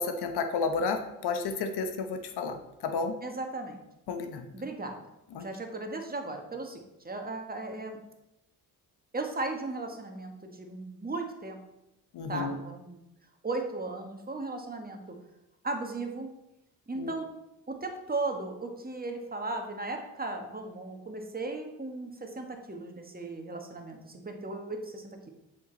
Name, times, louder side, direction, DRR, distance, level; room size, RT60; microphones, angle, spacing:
voice 1, 0.0-3.2 4.1-4.5 5.3-5.5 12.1-12.6 17.0-17.2, left 4 dB, 60° left, 7 dB, 1.1 m, -32 dB
voice 2, 3.2-3.8 4.5-5.0 5.4-8.0 9.1-11.6 12.3-13.0 13.4-15.1 15.6-16.3 16.9-17.2 17.7-25.3, right 2 dB, 20° right, 4 dB, 1.5 m, -36 dB
7.7 x 5.2 x 4.0 m, 0.89 s
hypercardioid pair, 50°, 44 cm